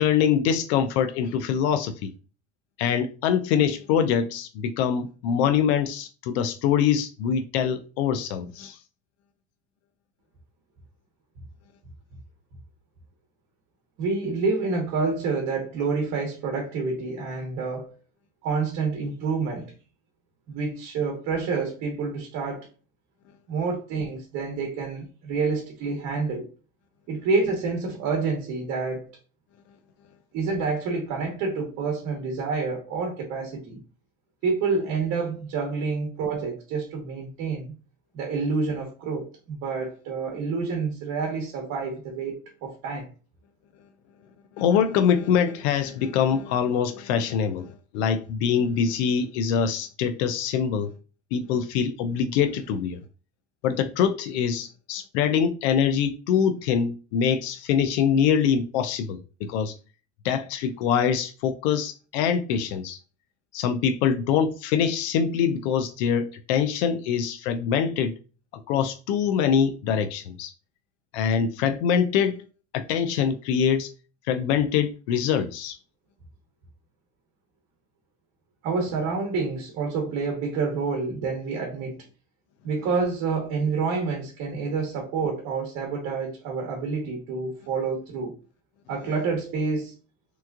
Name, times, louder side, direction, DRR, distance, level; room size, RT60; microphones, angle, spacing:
voice 1, 0.0-2.1 2.8-8.8 44.6-50.9 51.3-53.0 53.6-59.7 60.2-63.0 63.5-68.1 68.7-70.5 71.1-72.4 72.7-73.9 74.3-75.8, left 7 dB, 85° left, 0.5 m, -24 dB
voice 2, 14.0-17.9 18.4-19.7 20.5-22.7 23.5-26.5 27.1-29.2 30.3-33.8 34.4-37.7 38.1-43.1 78.6-82.0 82.6-88.3 88.9-90.0, right 4 dB, 50° right, 1.0 m, -28 dB
3.4 x 3.0 x 2.3 m
cardioid pair, 140°, 32 cm